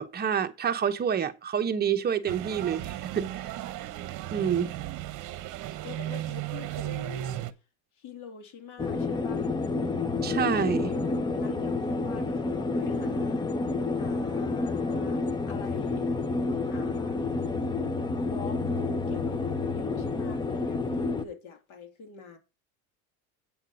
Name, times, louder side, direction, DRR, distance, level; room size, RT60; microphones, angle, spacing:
voice 1, 0.0-3.5 4.3-4.7 10.2-10.9, right 8 dB, 25° right, 1.0 m, -28 dB
sound 1, 2.3-7.5, right 14 dB, 50° right, 1.0 m, -35 dB
voice 2, 2.9-3.3 5.8-7.5 8.0-9.5 10.8-13.5 13.9-16.0 16.3-17.2 18.3-22.4, left 6 dB, 55° left, 2.8 m, -46 dB
sound 2, 8.8-21.2, left 3 dB, 10° left, 0.7 m, -29 dB
8.6 x 5.7 x 6.8 m
cardioid pair, 135°, 38 cm